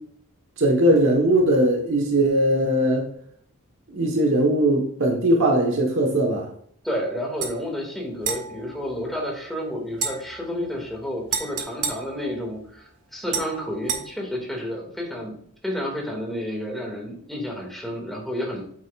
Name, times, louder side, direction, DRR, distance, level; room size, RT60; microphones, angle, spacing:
voice 1, 0.6-3.1 3.9-6.5, right 1 dB, 60° right, 1.3 m, -20 dB
voice 2, 6.8-15.3 15.6-18.6, equal, ahead, 2.1 m, -30 dB
sound 1, 7.4-7.5 8.2-9.5 9.9-12.8 13.3-14.0, right 6 dB, 75° right, 1.6 m, -32 dB
8.9 x 8.0 x 2.4 m
head